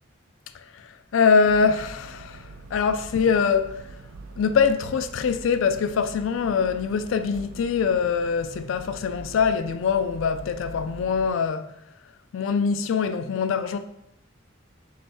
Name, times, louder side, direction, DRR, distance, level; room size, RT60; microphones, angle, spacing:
voice 1, 0.7-3.8 4.4-11.7 12.3-13.8, left 5 dB, 75° left, 0.3 m, -23 dB
sound 1, 1.4-11.3, right 3 dB, 80° right, 0.4 m, -43 dB
3.5 x 3.3 x 4.3 m
head